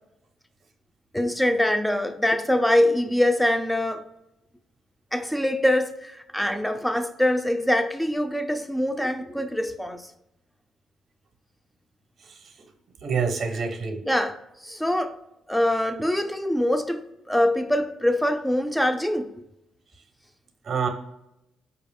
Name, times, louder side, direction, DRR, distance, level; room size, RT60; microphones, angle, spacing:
voice 1, 1.1-4.0 5.1-10.1 14.0-15.2 15.5-19.3, left 1 dB, 5° left, 0.4 m, -24 dB
voice 2, 13.0-14.0 20.7-20.9, right 5 dB, 50° right, 0.7 m, -26 dB
4.7 x 2.4 x 3.4 m
cardioid pair, 90°, 0 cm